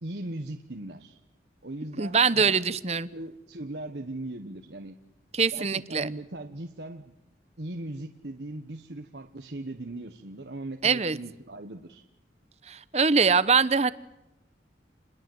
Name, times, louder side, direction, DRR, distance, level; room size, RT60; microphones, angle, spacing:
voice 1, 0.0-1.2 1.6-2.8 3.1-5.0 5.5-7.1 7.6-12.0, right 1 dB, 70° right, 5 dB, 1.3 m, -39 dB
voice 2, 2.0-3.1 5.3-6.1 10.8-11.2 12.6-13.9, right 5 dB, 35° right, 16 dB, 0.8 m, -23 dB
28.5 x 21.0 x 8.0 m, 0.92 s
head